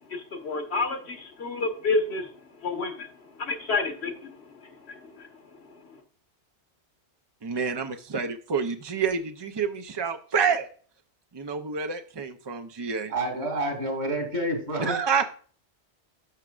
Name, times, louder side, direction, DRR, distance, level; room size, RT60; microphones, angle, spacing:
voice 1, 0.1-2.3 2.6-6.0, left 3 dB, 70° left, 5 dB, 1.5 m, -30 dB
voice 2, 7.4-10.7 11.3-13.1 14.8-15.3, right 6 dB, 40° right, 6 dB, 0.3 m, -28 dB
voice 3, 13.1-15.0, right 1 dB, 65° right, 4 dB, 2.8 m, -28 dB
12.0 x 6.1 x 2.4 m, 0.44 s
omnidirectional pair, 1.2 m